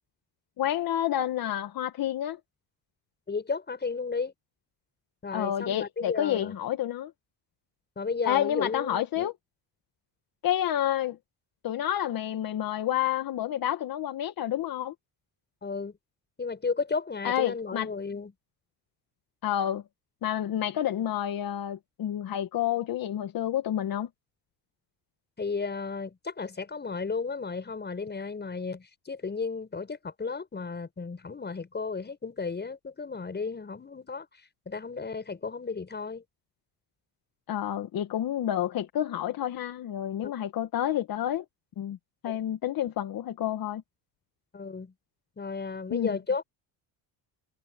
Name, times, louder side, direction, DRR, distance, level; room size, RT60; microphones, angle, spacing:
voice 1, 0.6-2.4 5.3-7.1 8.3-9.3 10.4-11.2 11.6-14.9 17.2-17.9 19.4-19.8 20.2-24.1 37.5-41.4 41.8-42.0 42.2-43.8 45.9-46.1, left 11 dB, 60° left, 1.9 m, -29 dB
voice 2, 3.3-4.3 5.2-6.6 8.0-9.3 15.6-15.9 16.4-18.3 25.4-34.3 34.7-36.2 40.2-40.3 44.5-44.9 45.4-46.4, left 4 dB, 25° left, 7.2 m, -33 dB
cardioid pair, 110°, 40 cm